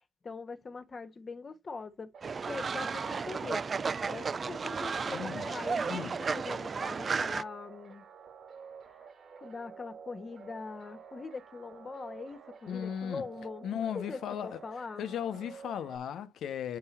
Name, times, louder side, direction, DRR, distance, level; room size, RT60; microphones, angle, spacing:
voice 1, 0.2-2.1 2.5-3.6 4.1-8.0 9.0-9.1 9.4-13.7 13.9-15.1, left 4 dB, 35° left, 1.4 m, -42 dB
sound 1, 2.1-16.0, right 6 dB, 60° right, 2.1 m, -50 dB
Fowl, 2.2-7.4, right 5 dB, 40° right, 0.5 m, -33 dB
voice 2, 5.1-5.5 5.8-6.2 12.7-13.2 13.6-14.6 15.0-16.8, left 9 dB, 70° left, 0.8 m, -36 dB
9.5 x 3.8 x 4.3 m
cardioid pair, 90°, 0 cm